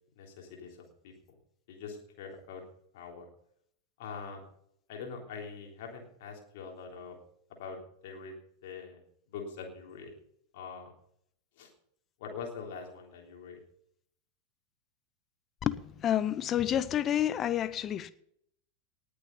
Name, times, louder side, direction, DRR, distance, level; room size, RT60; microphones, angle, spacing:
voice 1, 0.1-0.8 1.0-1.1 1.7-2.6 2.9-3.2 4.0-4.4 4.9-7.2 7.6-8.4 8.6-9.0 9.3-10.1 10.5-10.9 11.6-11.7 12.2-13.6, left 5 dB, 50° left, 3.3 m, -43 dB
voice 2, 15.6-18.1, left 10 dB, 30° left, 0.7 m, -29 dB
19.0 x 7.0 x 5.5 m
figure-of-eight pair, 90°, 0 cm